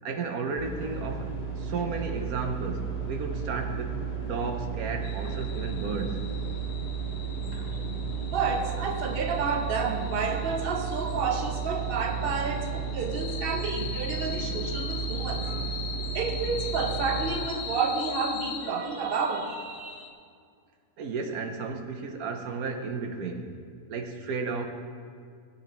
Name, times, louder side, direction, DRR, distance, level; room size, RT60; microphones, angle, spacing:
voice 1, 0.0-3.9 4.2-6.2 7.5-7.8 21.0-23.5 23.9-24.7, right 4 dB, 70° right, 4 dB, 1.4 m, -33 dB
sound 1, 0.6-17.3, right 6 dB, 25° left, 1.6 m, -33 dB
sound 2, 5.0-20.1, left 6 dB, 55° left, 0.8 m, -41 dB
voice 2, 8.2-15.8 16.1-20.0, right 5 dB, 45° right, 4 dB, 1.0 m, -30 dB
17.0 x 7.9 x 3.1 m, 2.2 s
omnidirectional pair, 1.6 m